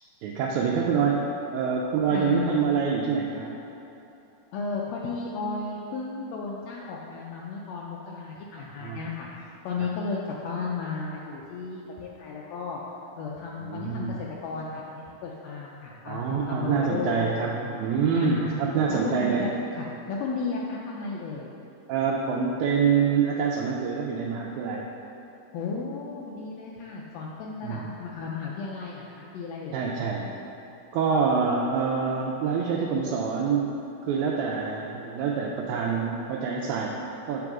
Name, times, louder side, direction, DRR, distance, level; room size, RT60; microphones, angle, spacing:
voice 1, 0.2-3.5 8.6-9.0 13.6-14.2 16.1-19.5 21.9-24.8 27.6-27.9 29.7-30.3 30.9-33.7 34.0-37.5, right 6 dB, 80° right, -2 dB, 1.7 m, -26 dB
voice 2, 2.1-2.6 4.5-9.3 9.6-12.8 13.2-17.2 18.1-18.6 18.9-19.5 19.7-21.5 25.5-29.8, left 4 dB, 85° left, -3 dB, 1.5 m, -34 dB
7.6 x 3.5 x 6.0 m, 2.9 s
omnidirectional pair, 3.6 m